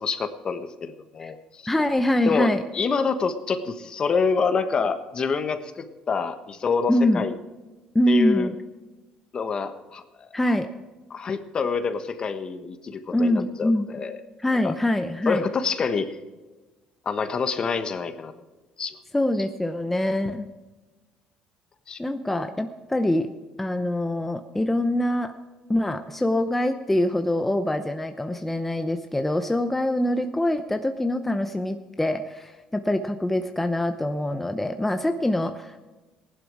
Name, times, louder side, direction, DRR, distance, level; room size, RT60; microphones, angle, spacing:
voice 1, 0.0-1.7 2.3-7.3 8.1-8.5 9.3-10.3 11.1-14.2 14.6-14.7 15.2-16.2 17.0-18.3 18.8-19.0 21.9-22.0, left 5 dB, 40° left, 9 dB, 1.2 m, -27 dB
voice 2, 1.7-2.6 6.9-7.2 7.9-8.5 10.3-10.7 13.1-13.9 14.4-15.5 19.1-20.5 22.0-23.3 23.6-25.3 25.7-35.8, left 1 dB, 10° left, 7 dB, 0.8 m, -24 dB
16.0 x 11.5 x 4.8 m, 1.2 s
cardioid pair, 95°, 2 cm